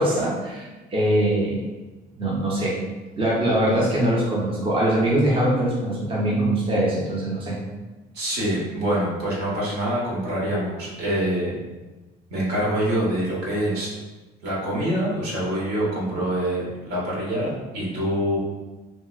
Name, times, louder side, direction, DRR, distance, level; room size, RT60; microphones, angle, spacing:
voice 1, 0.0-1.6 2.2-2.8 3.2-7.6, right 1 dB, 30° right, -5 dB, 0.7 m, -22 dB
voice 2, 8.1-11.6 12.3-13.9 14.4-18.4, right 1 dB, 75° right, -5 dB, 1.2 m, -25 dB
2.8 x 2.7 x 2.4 m, 1.2 s
cardioid pair, 110°, 17 cm